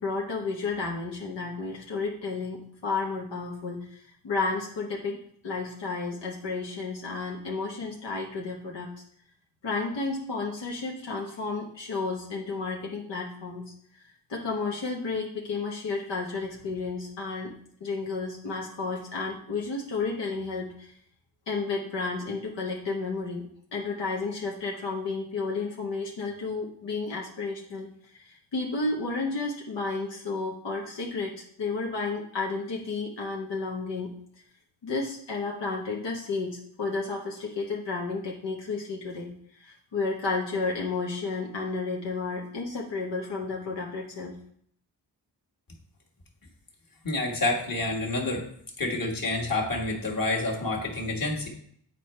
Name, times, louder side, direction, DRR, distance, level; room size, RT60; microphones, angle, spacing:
voice 1, 0.0-5.2 5.4-8.9 9.6-13.6 14.3-17.5 17.8-20.9 21.5-27.9 28.1-34.1 34.8-39.3 39.6-44.3, left 3 dB, 90° left, -2 dB, 1.0 m, -32 dB
voice 2, 47.0-48.5 48.8-51.5, left 2 dB, 55° left, -1 dB, 1.6 m, -28 dB
8.4 x 4.5 x 3.2 m, 0.64 s
wide cardioid pair, 65°, 42 cm